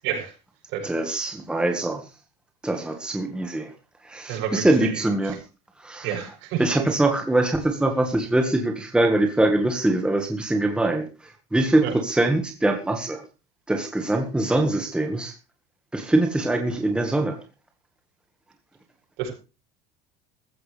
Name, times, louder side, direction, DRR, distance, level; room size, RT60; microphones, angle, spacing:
voice 1, 0.8-2.0 2.6-3.7 4.0-5.4 5.8-6.2 6.6-13.2 13.7-15.3 15.9-17.4, right 2 dB, 5° right, 4 dB, 1.6 m, -23 dB
voice 2, 4.3-4.9 6.0-6.8 11.8-11.9 19.2-19.3, right 9 dB, 70° right, 3 dB, 7.7 m, -29 dB
15.5 x 15.0 x 3.4 m, 0.31 s
cardioid pair, 160°, 20 cm